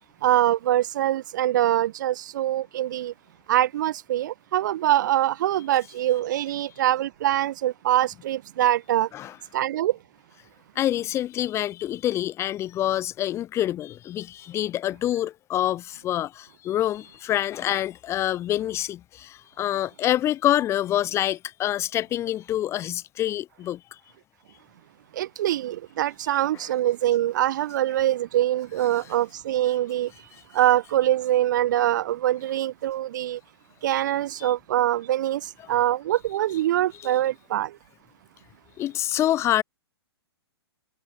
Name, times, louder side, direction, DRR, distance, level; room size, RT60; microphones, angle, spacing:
voice 1, 0.2-3.1 3.5-9.1 9.5-10.0 25.1-30.1 30.5-33.4 33.8-35.4 35.7-37.7, right 13 dB, 45° right, 0.6 m, -24 dB
voice 2, 10.8-23.8 26.5-26.7 34.4-34.5 37.0-37.2 38.8-39.6, left 12 dB, 20° left, 0.8 m, -26 dB
figure-of-eight pair, 115°, 14 cm